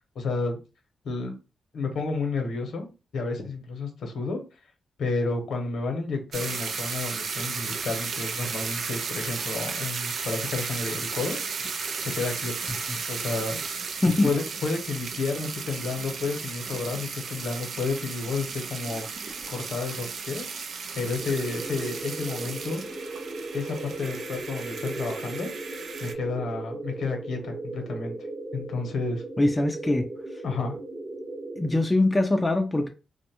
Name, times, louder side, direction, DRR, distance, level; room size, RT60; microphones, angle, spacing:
voice 1, 0.1-0.6 1.0-1.3 1.7-2.9 3.1-4.4 5.0-11.4 11.7-12.5 13.1-13.6 14.2-20.4 20.9-22.8 23.5-25.5 26.0-28.1 28.5-29.2 30.4-30.8, left 3 dB, 75° left, 0.8 m, -31 dB
sound 1, 6.3-26.1, right 5 dB, 70° right, 0.3 m, -34 dB
sound 2, 21.2-31.7, right 2 dB, 25° right, 0.9 m, -37 dB
voice 2, 29.4-30.1 31.6-32.9, left 2 dB, 15° left, 0.3 m, -22 dB
2.4 x 2.1 x 2.8 m
cardioid pair, 105°, 0 cm